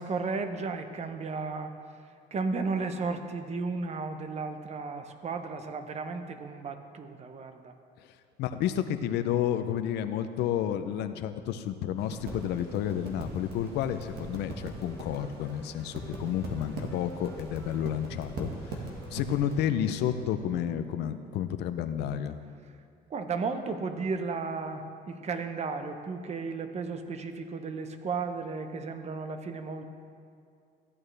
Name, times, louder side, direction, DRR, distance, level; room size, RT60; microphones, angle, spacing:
voice 1, 0.0-1.7 2.3-7.7 23.1-29.8, right 4 dB, 40° right, 8 dB, 0.8 m, -34 dB
voice 2, 8.4-18.5 19.1-22.4, left 10 dB, 80° left, 10 dB, 0.6 m, -31 dB
sound 1, 12.0-19.7, right 2 dB, 75° right, 1.6 m, -41 dB
sound 2, 14.4-20.5, left 1 dB, 5° left, 1.2 m, -51 dB
14.5 x 8.8 x 3.3 m, 2.3 s
cardioid pair, 110°, 17 cm